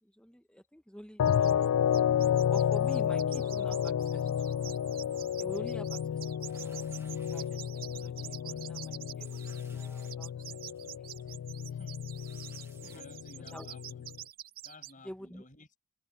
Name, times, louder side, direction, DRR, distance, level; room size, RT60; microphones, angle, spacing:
voice 1, 0.0-1.8 2.2-4.7 5.4-7.0 7.3-7.6 7.9-11.4 12.8-13.0 13.5-13.7 15.0-15.4, equal, 5° left, 1.3 m, -48 dB
sound 1, 1.2-14.2, left 9 dB, 80° left, 0.3 m, -31 dB
sound 2, 1.3-1.7 1.9-14.9, right 13 dB, 40° right, 0.6 m, -47 dB
sound 3, 6.4-7.5 8.1-8.3 8.5-8.6 9.2-10.1 10.7-10.9 12.1-13.0, right 3 dB, 10° right, 1.2 m, -59 dB
voice 2, 11.7-12.0 12.9-14.1 14.6-15.8, left 2 dB, 35° left, 6.9 m, -55 dB
head